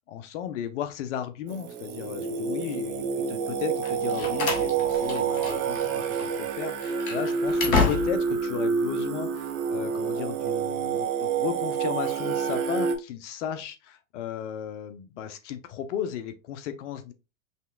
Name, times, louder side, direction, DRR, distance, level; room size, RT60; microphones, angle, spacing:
voice 1, 0.1-17.1, left 9 dB, 60° left, 0.9 m, -35 dB
Singing, 1.5-13.0, right 6 dB, 35° right, 0.8 m, -28 dB
Slam, 3.8-5.8 6.1-6.3 6.8-8.4, left 4 dB, 80° left, 1.6 m, -29 dB
5.5 x 3.4 x 2.3 m
hypercardioid pair, 105°, 41 cm